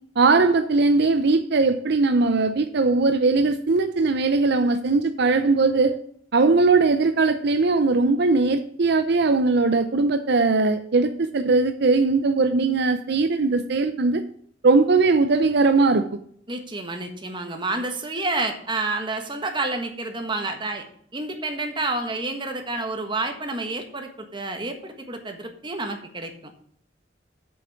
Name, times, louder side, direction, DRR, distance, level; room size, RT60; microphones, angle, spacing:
voice 1, 0.2-6.0 6.3-14.2 14.6-16.0, right 3 dB, 65° right, 9 dB, 0.6 m, -20 dB
voice 2, 16.5-20.8 21.1-26.5, right 2 dB, 25° right, 5 dB, 1.5 m, -29 dB
8.0 x 6.3 x 5.7 m, 0.62 s
head